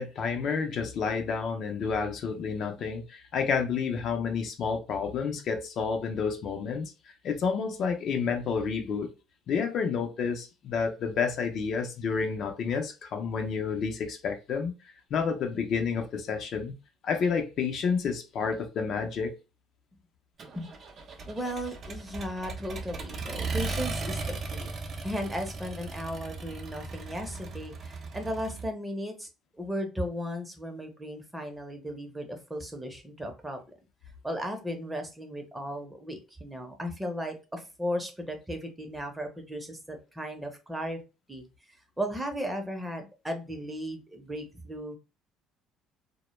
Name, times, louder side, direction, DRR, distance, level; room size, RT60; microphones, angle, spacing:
voice 1, 0.0-6.9 7.2-9.1 9.5-14.7 15.1-16.7 17.0-19.3, left 5 dB, 60° left, 0.5 m, -30 dB
Accelerating revving vroom, 20.4-28.7, right 3 dB, 45° right, 0.6 m, -37 dB
voice 2, 21.2-29.3 29.6-33.6 34.2-41.0 41.3-41.4 42.0-45.0, equal, 10° right, 0.7 m, -36 dB
2.1 x 2.1 x 3.0 m
supercardioid pair, 95°, 0 cm